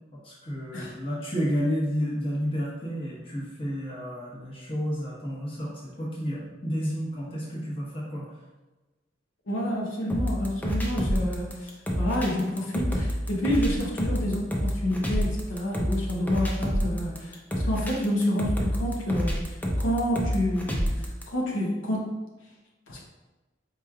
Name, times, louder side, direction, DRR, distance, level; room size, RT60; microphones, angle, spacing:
voice 1, 0.1-8.3, equal, 30° left, -5 dB, 1.0 m, -31 dB
voice 2, 9.5-22.1 22.9-23.0, equal, 80° left, -2 dB, 0.7 m, -29 dB
sound 1, 10.1-21.2, equal, 10° left, 0.4 m, -28 dB
4.7 x 3.0 x 2.3 m, 1.1 s
head